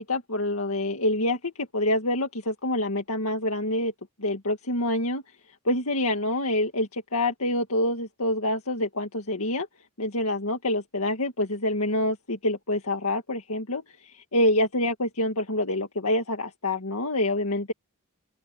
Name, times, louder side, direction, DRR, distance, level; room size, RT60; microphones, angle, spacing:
voice 1, 0.0-3.9 4.2-5.2 5.7-9.7 10.0-17.7, left 1 dB, 85° left, 2.1 m, -26 dB
open air
head